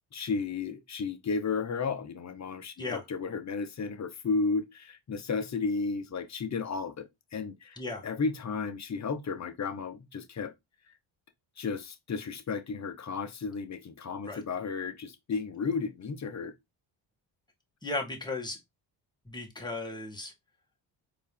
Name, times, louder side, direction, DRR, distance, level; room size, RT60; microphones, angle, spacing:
voice 1, 0.1-10.5 11.6-16.5, left 4 dB, 35° left, 0.9 m, -33 dB
voice 2, 7.8-8.1 14.2-14.4 17.8-18.6 19.2-20.3, left 2 dB, 10° left, 1.7 m, -35 dB
4.4 x 2.9 x 3.5 m
supercardioid pair, 75°, 47 cm